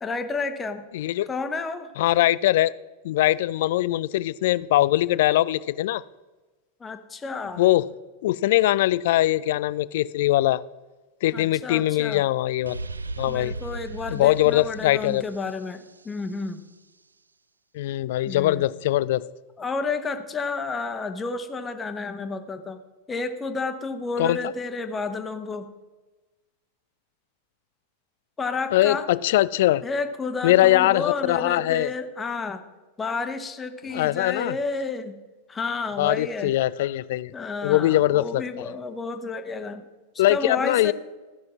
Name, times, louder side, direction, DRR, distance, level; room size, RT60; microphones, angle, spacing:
voice 1, 0.0-0.9 1.3-1.9 6.8-7.6 11.3-12.2 13.3-16.6 18.3-18.7 19.6-22.8 23.1-25.7 28.4-29.1 29.8-32.6 33.0-35.2 35.5-36.5 37.3-39.8 40.3-40.9, left 4 dB, 15° left, 8 dB, 1.0 m, -31 dB
voice 2, 0.9-1.3 2.0-2.7 3.0-6.0 7.6-7.9 8.2-10.6 11.2-12.8 13.2-13.5 14.1-15.2 17.7-19.2 24.2-24.4 28.7-29.8 30.4-31.9 33.9-34.6 36.0-37.3 37.6-38.4 40.2-40.9, left 15 dB, 55° left, 19 dB, 0.3 m, -21 dB
sound 1, 12.6-16.4, right 3 dB, 75° right, 0.3 m, -37 dB
14.0 x 5.9 x 6.0 m, 1.2 s
figure-of-eight pair, 90°, 0 cm